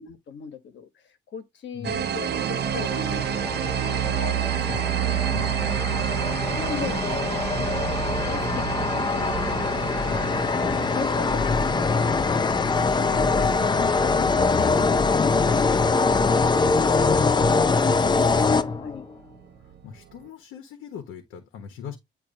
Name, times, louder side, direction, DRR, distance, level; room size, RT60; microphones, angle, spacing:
voice 1, 0.0-4.7 5.2-8.7 8.9-9.4 10.2-12.0 12.8-14.9 15.1-16.3 17.5-18.0 18.8-19.1, left 6 dB, 65° left, 1.4 m, -38 dB
voice 2, 1.7-2.5 4.7-4.9 5.3-5.9 7.6-8.1 10.0-10.3 13.1-14.1 16.9-17.2 18.0-18.9 19.6-22.0, left 6 dB, 90° left, 1.3 m, -40 dB
sound 1, 1.8-17.3, right 11 dB, 55° right, 0.6 m, -30 dB
sound 2, 2.3-19.1, left 4 dB, 20° left, 0.5 m, -23 dB
8.7 x 2.9 x 4.0 m
cardioid pair, 90°, 20 cm